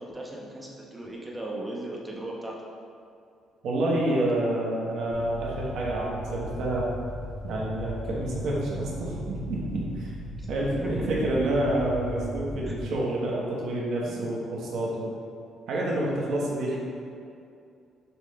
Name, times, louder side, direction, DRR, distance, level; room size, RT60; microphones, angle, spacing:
voice 1, 0.0-2.6 4.1-4.3 10.4-10.5 10.8-11.1 12.6-12.8 14.0-14.2, right 1 dB, 10° right, -3 dB, 0.7 m, -37 dB
voice 2, 3.6-6.9 7.4-10.1 10.5-15.2 15.7-16.8, right 1 dB, 70° right, -4 dB, 0.9 m, -28 dB
sound 1, 5.1-12.9, right 1 dB, 30° right, 1.0 m, -37 dB
6.7 x 3.5 x 2.2 m, 2.5 s
cardioid pair, 135°, 0 cm